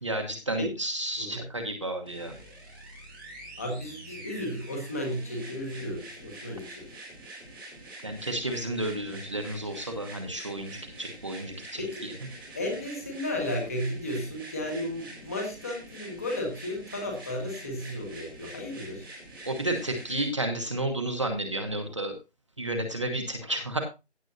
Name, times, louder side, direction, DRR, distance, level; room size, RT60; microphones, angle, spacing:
voice 1, 0.0-2.4 8.0-12.1 19.4-22.1 22.6-23.8, right 1 dB, 25° right, 4 dB, 1.1 m, -32 dB
sound 1, 2.1-20.3 21.2-21.3, right 1 dB, 10° right, 3.3 m, -46 dB
voice 2, 3.6-7.0 11.8-12.0 12.5-19.1, left 1 dB, 15° left, 2 dB, 1.6 m, -34 dB
16.0 x 7.4 x 2.7 m, 0.27 s
figure-of-eight pair, 175°, 34 cm